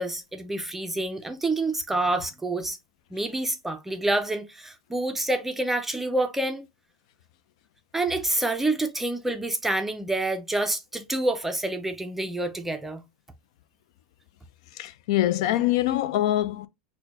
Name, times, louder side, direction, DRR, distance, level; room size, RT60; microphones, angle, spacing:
voice 1, 0.0-2.8 3.1-6.7 7.9-13.0, right 2 dB, 5° right, 0.4 m, -27 dB
voice 2, 14.8-16.7, left 14 dB, 70° left, 0.4 m, -24 dB
4.2 x 2.1 x 2.7 m
supercardioid pair, 130°, 4 cm